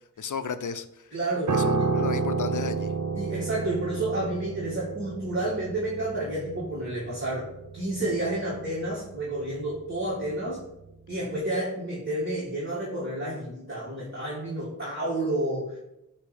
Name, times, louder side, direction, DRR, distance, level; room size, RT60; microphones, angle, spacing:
voice 1, 0.2-1.1 1.5-2.9, left 6 dB, 70° left, 11 dB, 0.6 m, -34 dB
voice 2, 1.1-1.9 3.1-7.5 7.7-10.6 11.1-15.8, right 1 dB, 35° right, -7 dB, 2.1 m, -30 dB
Piano, 1.5-10.9 11.1-11.4, right 4 dB, 65° right, 0.6 m, -31 dB
8.4 x 2.9 x 5.1 m, 0.85 s
wide cardioid pair, 60°, 32 cm